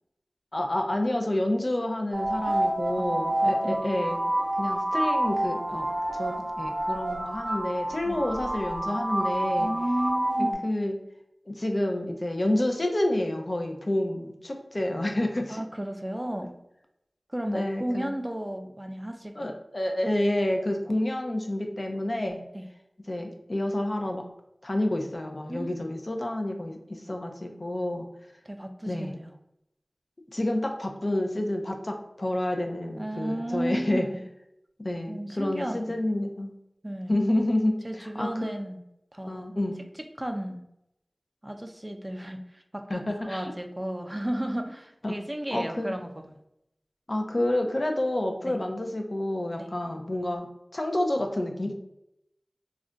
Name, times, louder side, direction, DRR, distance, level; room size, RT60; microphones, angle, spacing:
voice 1, 0.5-4.2 4.6-5.9 6.1-9.7 10.4-11.0 11.5-15.6 17.5-18.1 19.4-22.4 23.1-24.2 24.6-28.1 28.9-29.2 30.3-34.1 34.8-36.5 37.1-38.7 39.3-39.8 42.9-43.5 45.0-45.2 45.5-45.9 47.1-50.5 50.7-51.7, left 1 dB, 45° left, 3 dB, 0.4 m, -29 dB
sound 1, 2.1-10.5, right 1 dB, 85° right, 0.6 m, -28 dB
voice 2, 3.4-3.8 8.0-8.2 9.6-10.6 15.5-16.5 17.3-19.5 22.5-22.7 25.5-25.7 28.5-29.3 33.0-34.2 35.1-36.0 36.8-37.2 37.8-38.8 39.1-39.5 40.2-40.6 41.4-46.4 48.5-48.6 49.6-49.7, right 1 dB, 20° right, 5 dB, 0.3 m, -33 dB
2.4 x 2.1 x 3.7 m, 0.82 s
wide cardioid pair, 60°, 0 cm